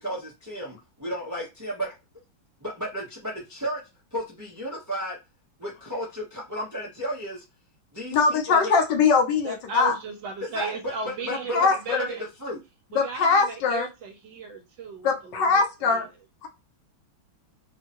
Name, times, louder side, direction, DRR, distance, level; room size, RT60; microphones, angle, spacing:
voice 1, 0.0-1.9 2.6-3.8 4.1-5.2 5.6-7.4 7.9-8.7 10.4-12.0 12.4-12.6, equal, 25° right, 0.4 m, -33 dB
voice 2, 8.1-10.0 11.5-12.1 12.9-13.9 15.0-16.1 16.4-16.5, left 5 dB, 70° left, 1.2 m, -22 dB
voice 3, 9.4-12.3 12.9-16.1, right 4 dB, 70° right, 1.3 m, -36 dB
3.5 x 2.2 x 2.9 m
omnidirectional pair, 2.2 m